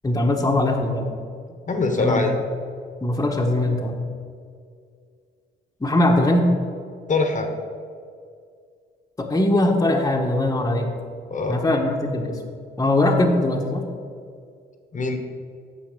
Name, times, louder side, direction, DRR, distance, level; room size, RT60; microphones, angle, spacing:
voice 1, 0.0-1.1 2.0-2.2 3.0-4.0 5.8-6.5 9.2-10.9 11.5-12.4 12.8-13.8, left 1 dB, 15° left, 1 dB, 1.4 m, -21 dB
voice 2, 1.7-2.3 7.1-7.5 11.3-11.6 14.9-15.2, left 3 dB, 40° left, 5 dB, 1.4 m, -23 dB
9.2 x 6.8 x 6.9 m, 2.2 s
cardioid pair, 90°, 20 cm